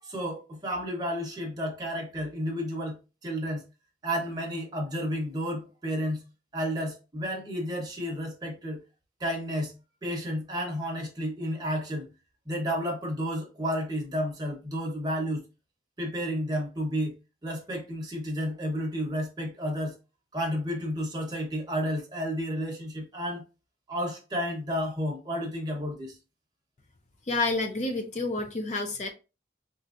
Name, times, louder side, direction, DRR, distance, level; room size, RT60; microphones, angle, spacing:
voice 1, 0.0-3.6 4.0-6.2 6.5-8.8 9.2-9.7 10.0-12.0 12.4-15.4 16.0-17.1 17.4-19.9 20.3-23.4 23.9-26.2, equal, 25° right, 1.0 m, -31 dB
voice 2, 27.3-29.1, left 2 dB, 40° left, 0.5 m, -29 dB
4.3 x 2.5 x 2.5 m
head